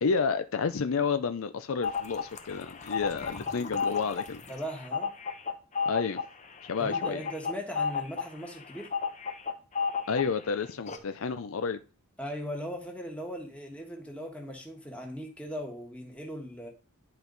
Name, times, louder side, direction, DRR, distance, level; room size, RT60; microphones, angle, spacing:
voice 1, 0.0-4.4 5.9-6.2 6.6-7.2 10.1-11.8, left 5 dB, 70° left, 10 dB, 0.5 m, -30 dB
sound 1, 1.8-10.5 10.9-11.0, left 5 dB, 35° left, 0.8 m, -33 dB
voice 2, 4.5-5.1 6.8-8.9 12.2-16.7, equal, 5° left, 1 dB, 1.5 m, -39 dB
10.5 x 4.4 x 4.0 m, 0.35 s
head